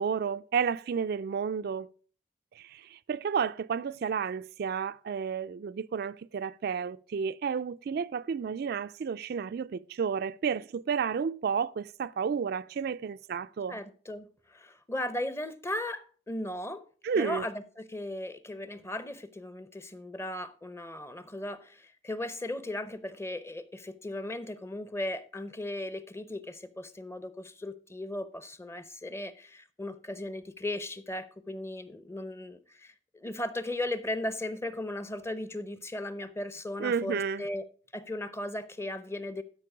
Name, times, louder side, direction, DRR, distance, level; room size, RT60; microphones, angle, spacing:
voice 1, 0.0-1.9 2.6-13.8 17.0-17.5 36.8-37.4, right 6 dB, 60° right, 0.4 m, -31 dB
voice 2, 13.7-16.8 17.2-37.6 37.9-39.4, left 1 dB, 15° left, 0.7 m, -37 dB
12.5 x 5.3 x 4.9 m
head